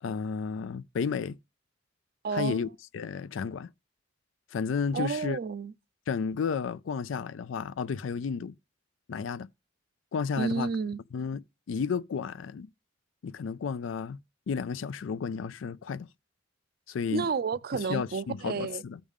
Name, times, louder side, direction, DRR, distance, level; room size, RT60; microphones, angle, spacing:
voice 1, 0.0-1.4 2.3-2.7 2.9-3.7 4.5-5.4 6.1-8.5 9.1-9.5 10.1-10.7 11.1-11.4 11.7-12.7 13.2-14.2 14.5-16.1 16.9-17.3 17.7-19.0, left 6 dB, 80° left, 0.4 m, -32 dB
voice 2, 2.2-2.6 4.9-5.7 10.4-11.0 17.1-18.8, right 5 dB, 50° right, 0.5 m, -31 dB
14.5 x 5.0 x 3.6 m
head